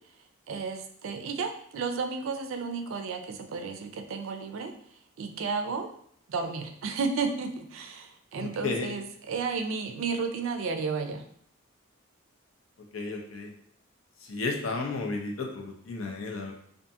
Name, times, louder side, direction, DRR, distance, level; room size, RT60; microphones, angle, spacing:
voice 1, 0.5-4.7 5.2-5.9 6.3-11.2, right 4 dB, 75° right, 6 dB, 0.4 m, -32 dB
voice 2, 8.4-8.9 12.9-13.5 14.2-16.5, left 3 dB, 80° left, 2 dB, 0.5 m, -33 dB
2.5 x 2.4 x 2.7 m, 0.64 s
head